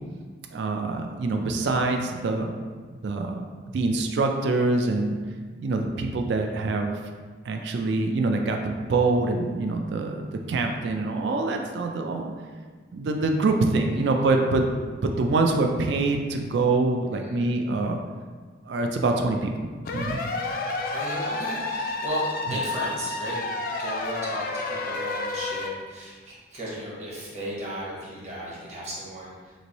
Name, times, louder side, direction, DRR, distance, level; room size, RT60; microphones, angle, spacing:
voice 1, 0.5-2.5 2.9-3.4 3.7-5.2 5.6-6.9 7.4-12.3 12.9-14.7 15.0-18.0 18.6-19.7 19.9-20.2, right 3 dB, 70° right, 3 dB, 0.4 m, -25 dB
voice 2, 17.1-17.5 20.9-23.4 23.8-29.5, right 1 dB, 40° right, -6 dB, 1.0 m, -35 dB
sound 1, 19.9-25.7, left 3 dB, 50° left, 0.4 m, -30 dB
3.1 x 2.5 x 4.0 m, 1.5 s
head